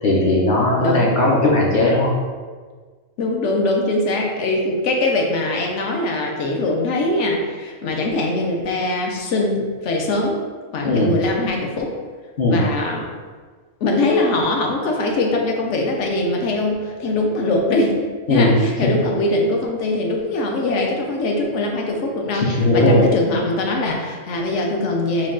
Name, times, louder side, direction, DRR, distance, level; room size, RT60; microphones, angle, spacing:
voice 1, 0.0-2.1 10.8-11.1 12.4-12.6 18.3-18.9 22.3-23.1, left 1 dB, 50° left, -4 dB, 0.7 m, -17 dB
voice 2, 0.8-1.1 3.2-10.4 10.7-11.9 12.5-13.1 13.8-18.0 18.3-25.3, left 2 dB, 70° left, 1 dB, 1.0 m, -22 dB
4.5 x 2.3 x 3.7 m, 1.5 s
omnidirectional pair, 1.3 m